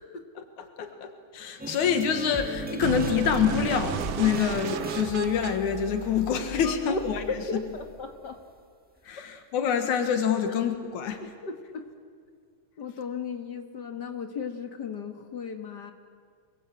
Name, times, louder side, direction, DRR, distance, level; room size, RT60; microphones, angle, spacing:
voice 1, 0.4-7.6 9.0-11.2, left 7 dB, 90° left, 6 dB, 3.0 m, -27 dB
sound 1, 1.6-8.4, right 1 dB, 5° right, 0.7 m, -38 dB
sound 2, 2.8-6.8, right 9 dB, 65° right, 1.7 m, -34 dB
voice 2, 6.6-7.0 7.5-8.4 10.4-10.5 11.4-11.8 12.8-15.9, left 5 dB, 45° left, 6 dB, 1.7 m, -35 dB
27.5 x 22.0 x 8.4 m, 2.1 s
omnidirectional pair, 3.3 m